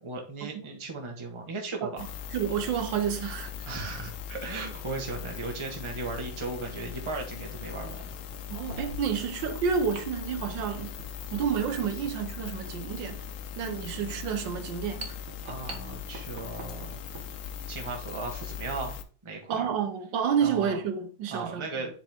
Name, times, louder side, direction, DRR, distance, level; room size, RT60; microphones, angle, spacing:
voice 1, 0.0-2.1 3.6-8.0 15.4-17.0 17.7-18.9 19.2-19.7 20.4-20.8 21.3-22.0, right 3 dB, 20° right, 1.0 m, -36 dB
sound 1, 2.0-19.0, left 7 dB, 75° left, 1.5 m, -40 dB
voice 2, 2.3-3.5 8.5-11.0 11.3-13.3 13.6-15.2 19.5-21.6, right 7 dB, 65° right, 1.4 m, -29 dB
sound 2, 6.2-6.3 6.8-6.9 7.5-17.3, right 3 dB, 45° right, 1.4 m, -47 dB
7.4 x 4.4 x 3.5 m
omnidirectional pair, 2.3 m